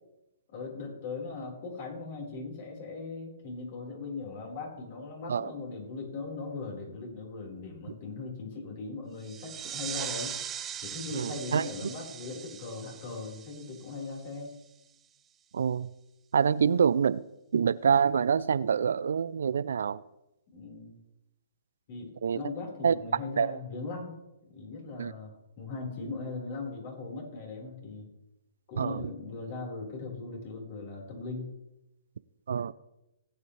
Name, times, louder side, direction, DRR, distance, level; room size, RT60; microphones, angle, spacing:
voice 1, 0.5-10.3 10.8-14.5 16.6-16.8 20.5-21.0 21.9-24.2 24.5-28.1 28.7-31.5, left 3 dB, 45° left, 4.6 m, -39 dB
sound 1, 9.2-14.5, right 9 dB, 20° right, 0.8 m, -40 dB
voice 2, 11.1-11.7 15.5-15.9 16.3-17.2 17.5-20.0 22.2-22.4 22.8-22.9 23.4-23.6 25.0-25.1 28.8-29.1 32.5-32.7, right 7 dB, 70° right, 0.4 m, -26 dB
19.0 x 8.7 x 3.3 m
hypercardioid pair, 130°, 0 cm